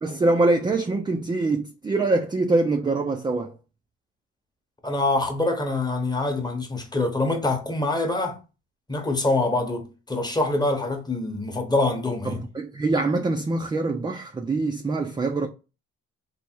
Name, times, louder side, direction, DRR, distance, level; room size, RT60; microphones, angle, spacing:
voice 1, 0.0-3.5 12.2-15.5, right 2 dB, 15° right, 0.3 m, -24 dB
voice 2, 4.8-8.4 8.9-12.4, left 2 dB, 15° left, 0.8 m, -25 dB
3.3 x 2.0 x 4.2 m
cardioid pair, 90°, 30 cm